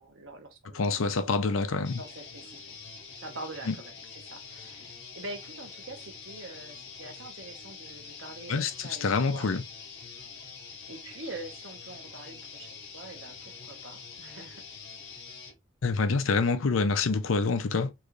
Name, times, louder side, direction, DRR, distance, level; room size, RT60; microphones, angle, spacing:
voice 1, 0.0-1.2 2.0-2.8 3.2-9.5 10.9-14.6, right 2 dB, 70° right, 1.1 m, -45 dB
voice 2, 0.7-2.0 3.7-3.8 8.5-9.6 15.8-17.9, left 4 dB, 80° left, 0.6 m, -26 dB
sound 1, 1.8-15.5, left 5 dB, 55° left, 0.9 m, -45 dB
3.1 x 2.5 x 3.1 m
head